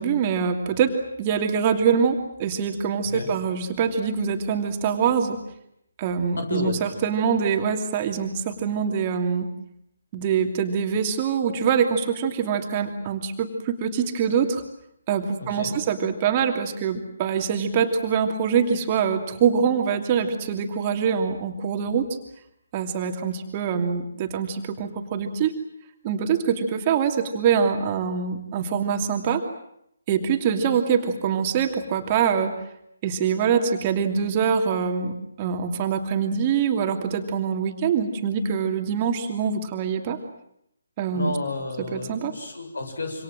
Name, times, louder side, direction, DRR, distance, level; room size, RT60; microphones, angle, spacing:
voice 1, 0.0-5.4 6.0-9.5 10.1-14.6 15.1-22.1 22.7-25.5 26.0-29.5 30.1-32.5 33.0-40.2 41.0-41.4 41.9-42.3, right 7 dB, 25° right, 4 dB, 2.8 m, -24 dB
voice 2, 6.4-6.8 15.4-15.8 41.1-43.2, left 2 dB, 60° left, 6 dB, 7.6 m, -31 dB
27.0 x 26.0 x 7.8 m, 0.77 s
figure-of-eight pair, 145°, 0 cm